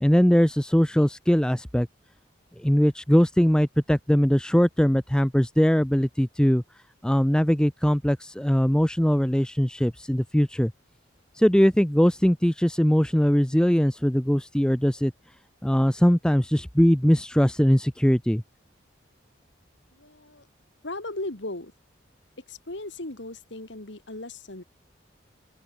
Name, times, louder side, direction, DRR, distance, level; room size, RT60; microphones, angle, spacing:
voice 1, 0.0-1.9 2.6-6.6 7.0-10.7 11.4-15.1 15.6-18.4, equal, 5° left, 0.5 m, -21 dB
voice 2, 19.9-20.5 20.8-21.7 22.4-24.6, left 2 dB, 70° left, 2.8 m, -37 dB
open air
head